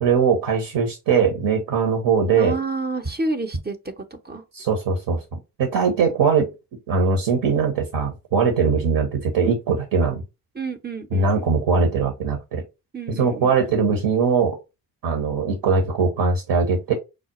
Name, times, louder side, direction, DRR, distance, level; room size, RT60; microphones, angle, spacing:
voice 1, 0.0-2.6 4.5-6.5 6.9-10.2 11.1-12.6 13.1-14.6 15.0-16.9, right 5 dB, 60° right, 1.1 m, -21 dB
voice 2, 2.4-3.8 4.2-4.4 10.5-11.5 12.9-13.5, right 3 dB, 20° right, 0.7 m, -28 dB
4.9 x 2.1 x 3.0 m
hypercardioid pair, 40°, 46 cm